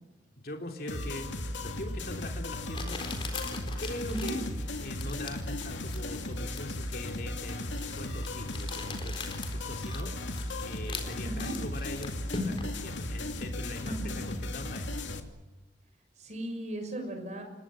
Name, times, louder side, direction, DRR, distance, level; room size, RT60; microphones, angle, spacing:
voice 1, 0.3-3.1 3.8-4.4 4.8-9.2 9.5-15.0, left 1 dB, 55° left, 3 dB, 3.1 m, -42 dB
sound 1, 0.9-15.2, left 1 dB, 85° left, 2.8 m, -36 dB
Crumpling crinkling, 2.7-12.8, left 3 dB, 30° left, 4.1 m, -41 dB
voice 2, 11.2-11.5 13.8-14.5 16.2-17.4, right 1 dB, 40° right, 5 dB, 6.6 m, -37 dB
28.5 x 21.0 x 7.6 m, 1.1 s
head